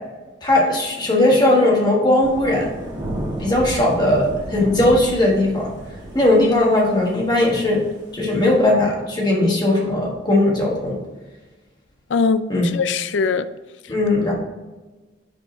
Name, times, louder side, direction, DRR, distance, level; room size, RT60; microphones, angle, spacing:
voice 1, 0.4-2.7 3.4-5.7 6.1-7.8 8.1-11.0 12.5-12.7 13.9-14.3, left 1 dB, 25° left, 1.3 m, -18 dB
Thunder / Rain, 2.2-8.6, right 1 dB, 25° right, 1.4 m, -32 dB
voice 2, 12.1-13.4, left 5 dB, 80° left, 0.4 m, -21 dB
5.2 x 4.8 x 4.3 m
head